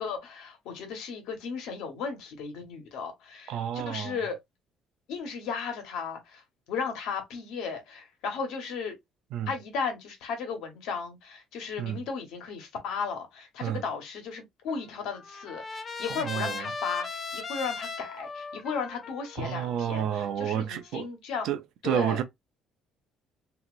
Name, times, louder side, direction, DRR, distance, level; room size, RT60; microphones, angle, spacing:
voice 1, 0.0-4.4 5.1-9.0 9.5-21.5 21.8-22.2, left 5 dB, 80° left, 1.2 m, -35 dB
voice 2, 3.5-4.2 9.3-9.5 11.8-12.0 13.6-13.8 16.1-16.7 19.4-21.1 21.4-22.2, right 9 dB, 65° right, 0.5 m, -30 dB
Trumpet, 14.7-20.8, left 4 dB, 25° left, 0.5 m, -39 dB
3.0 x 2.8 x 2.5 m
cardioid pair, 155°, 0 cm